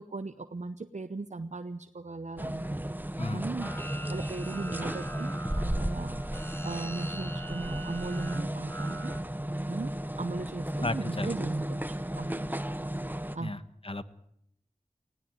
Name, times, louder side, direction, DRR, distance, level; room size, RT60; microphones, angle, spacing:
voice 1, 0.0-2.7 3.3-3.7 4.1-9.2 9.7-12.5 13.3-13.6, right 3 dB, 60° right, 10 dB, 0.8 m, -38 dB
sound 1, 2.4-13.4, right 1 dB, 15° right, 1.2 m, -34 dB
sound 2, 3.6-9.2, right 1 dB, 15° left, 1.7 m, -44 dB
voice 2, 10.8-11.3 13.4-13.6 13.8-14.0, left 2 dB, 45° left, 13 dB, 1.4 m, -33 dB
19.0 x 16.5 x 9.5 m, 0.76 s
wide cardioid pair, 40°, 14 cm